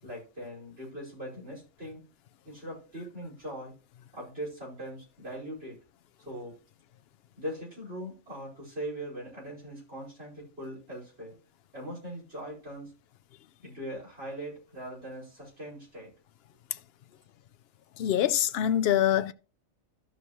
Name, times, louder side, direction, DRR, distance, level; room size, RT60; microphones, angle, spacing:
voice 1, 0.0-2.0 2.5-3.7 4.1-5.8 6.2-6.5 7.4-11.4 11.7-12.9 13.6-16.1, equal, 45° right, 5.5 m, -40 dB
voice 2, 18.0-19.3, left 11 dB, 65° left, 0.7 m, -25 dB
14.0 x 5.6 x 3.1 m
omnidirectional pair, 1.4 m